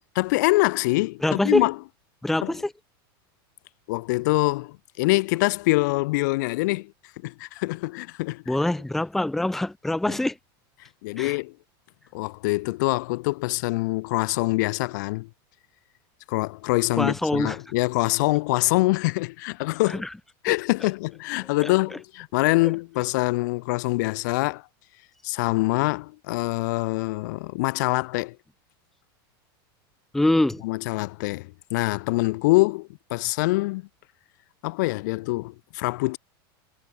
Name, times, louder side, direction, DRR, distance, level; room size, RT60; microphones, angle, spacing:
voice 1, 0.0-1.7 2.4-2.5 3.9-6.9 7.2-8.4 11.0-11.5 12.1-15.3 16.3-20.0 20.4-24.6 25.2-28.4 30.6-33.8 34.6-36.2, left 22 dB, 50° left, 0.6 m, -24 dB
voice 2, 1.2-1.7 2.2-2.7 8.5-10.4 11.2-11.4 17.0-17.6 19.9-20.1 21.6-21.7 30.1-30.6, left 1 dB, ahead, 0.7 m, -24 dB
supercardioid pair, 175°, 13 cm